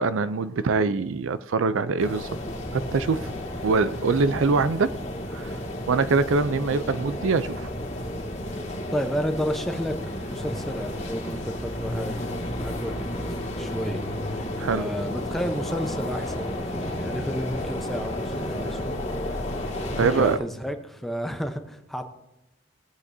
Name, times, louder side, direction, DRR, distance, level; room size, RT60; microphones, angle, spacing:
voice 1, 0.0-2.3 2.7-3.3 3.6-5.0 5.3-5.6 5.9-7.7 14.6-14.9 18.7-18.8 19.9-20.4, right 4 dB, 75° right, 0.4 m, -23 dB
sound 1, 2.0-20.4, left 1 dB, 35° left, 1.9 m, -32 dB
voice 2, 8.9-10.0 10.3-12.2 12.5-19.0 19.8-22.1, equal, ahead, 0.8 m, -32 dB
19.0 x 8.2 x 2.7 m
head